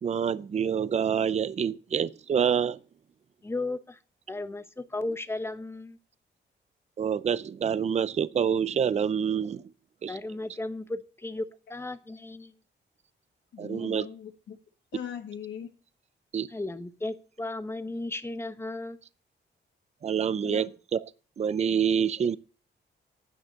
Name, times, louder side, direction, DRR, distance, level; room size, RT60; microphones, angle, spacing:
voice 1, 0.0-2.8 7.0-9.6 10.0-10.2 13.6-14.1 16.3-16.5 20.0-21.0 21.4-22.4, right 7 dB, 35° right, 0.5 m, -27 dB
voice 2, 3.4-4.0 4.3-6.0 10.1-12.5 16.5-19.0, left 2 dB, 15° left, 1.0 m, -35 dB
voice 3, 13.5-14.6 14.9-15.7 20.4-20.6, left 8 dB, 80° left, 1.6 m, -39 dB
11.5 x 9.7 x 6.5 m
wide cardioid pair, 155°, 19 cm